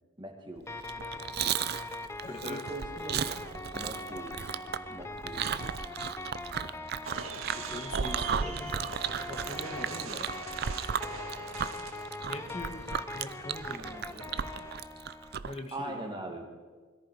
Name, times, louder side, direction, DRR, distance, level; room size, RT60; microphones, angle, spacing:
voice 1, 0.2-0.7 2.3-3.4 3.7-4.4 4.9-5.6 8.1-8.6 15.7-16.4, right 1 dB, 20° right, 2 dB, 2.2 m, -41 dB
sound 1, 0.7-15.4, left 2 dB, 15° left, 0.8 m, -42 dB
Chewing mastication, 0.8-15.6, right 7 dB, 50° right, 0.5 m, -35 dB
voice 2, 2.2-2.6 7.5-8.7 9.3-10.3 12.3-14.3 15.4-16.2, left 1 dB, 30° left, 3 dB, 1.4 m, -43 dB
sound 2, 7.0-14.7, right 4 dB, 80° right, 1.8 m, -43 dB
21.5 x 14.0 x 4.9 m, 1.4 s
head